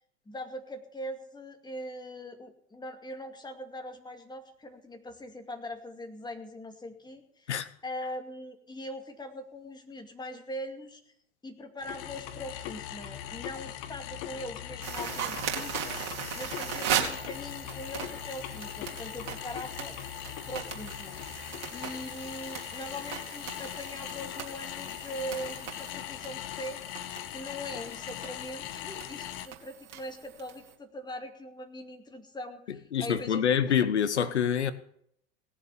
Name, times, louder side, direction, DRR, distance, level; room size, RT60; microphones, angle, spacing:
voice 1, 0.3-7.5 7.8-11.0 11.4-20.1 20.5-21.2 21.7-33.4 33.7-33.8, left 1 dB, 10° left, 2.4 m, -41 dB
sound 1, 11.8-29.5, left 12 dB, 50° left, 1.1 m, -40 dB
sound 2, 14.8-30.7, right 8 dB, 55° right, 3.0 m, -38 dB
voice 2, 32.7-34.7, left 8 dB, 80° left, 0.9 m, -26 dB
18.0 x 7.2 x 8.5 m
figure-of-eight pair, 75°, 34 cm